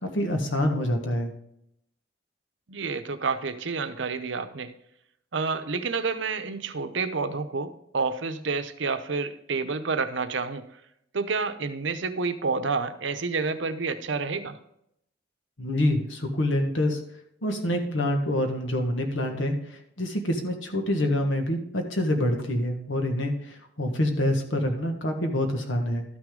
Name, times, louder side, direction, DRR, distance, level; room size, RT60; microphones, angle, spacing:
voice 1, 0.0-1.3 15.6-17.0 17.4-26.0, left 1 dB, 90° left, 4 dB, 1.5 m, -26 dB
voice 2, 2.7-4.7 5.3-10.6 11.1-14.6, right 4 dB, 75° right, 10 dB, 0.7 m, -29 dB
12.5 x 6.2 x 3.8 m, 0.76 s
head